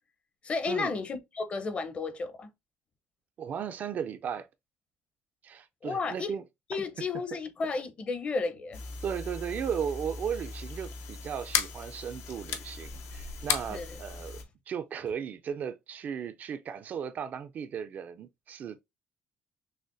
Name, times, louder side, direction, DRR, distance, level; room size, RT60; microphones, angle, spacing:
voice 1, 0.4-2.5 5.8-6.3 6.7-8.8 13.7-14.0, left 4 dB, 30° left, 0.6 m, -33 dB
voice 2, 3.4-4.5 5.4-6.4 9.0-14.4 14.7-18.8, right 7 dB, 40° right, 0.3 m, -36 dB
sound 1, 8.7-14.4, left 6 dB, 80° left, 0.6 m, -36 dB
6.2 x 2.1 x 2.5 m
cardioid pair, 155°, 4 cm